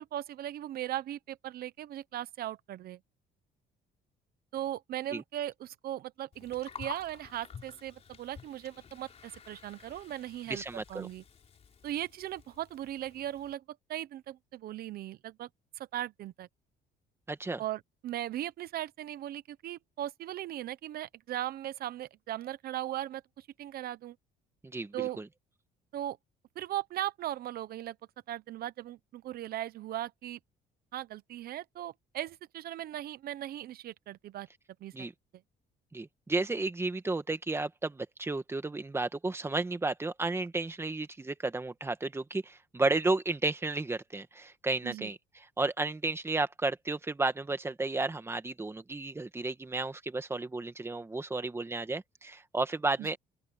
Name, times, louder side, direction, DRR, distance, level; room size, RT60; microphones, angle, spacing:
voice 1, 0.0-3.0 4.5-11.2 11.8-13.6 13.9-15.5 15.8-16.5 17.6-24.2 24.9-25.2 25.9-26.2 26.6-28.0 28.3-30.4 30.9-34.5 34.8-35.1 44.8-45.1 53.0-53.2, right 13 dB, 60° right, 0.9 m, -38 dB
Gurgling, 6.3-13.5, left 6 dB, 40° left, 3.7 m, -50 dB
voice 2, 10.5-11.1 17.3-17.6 24.6-25.3 34.9-35.1 35.9-53.2, right 3 dB, 15° right, 1.7 m, -33 dB
open air
cardioid pair, 115°, 17 cm